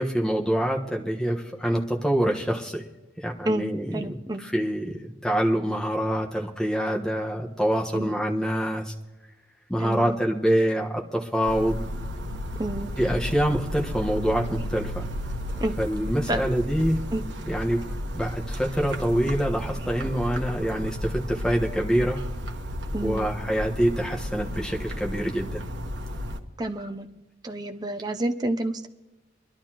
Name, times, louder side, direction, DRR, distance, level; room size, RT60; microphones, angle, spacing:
voice 1, 0.0-2.8 3.2-4.2 4.5-8.9 9.7-11.8 13.0-15.0 15.8-17.0 17.5-17.8 18.1-22.2 23.0-25.6, equal, 5° left, 0 dB, 1.3 m, -25 dB
voice 2, 3.9-4.4 7.9-8.2 9.8-10.2 12.6-12.9 15.6-15.7 16.3-16.4 17.1-17.2 22.9-23.3 26.6-27.1 27.4-28.9, right 1 dB, 20° right, 6 dB, 0.6 m, -29 dB
sound 1, 11.5-26.4, equal, 75° right, 1.2 m, -33 dB
24.5 x 12.0 x 3.0 m, 1.1 s
head